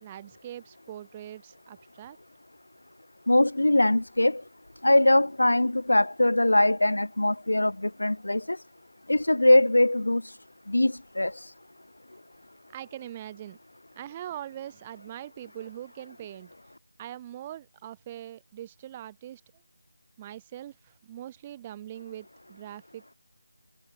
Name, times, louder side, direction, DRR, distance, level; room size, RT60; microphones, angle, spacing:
voice 1, 0.0-2.2 12.7-13.6 13.9-16.5 17.0-19.4 20.2-23.0, right 12 dB, 15° right, 0.7 m, -42 dB
voice 2, 3.3-4.4 4.8-8.6 9.1-10.4 10.7-11.5, left 1 dB, 85° left, 0.8 m, -22 dB
figure-of-eight pair, 170°, 0 cm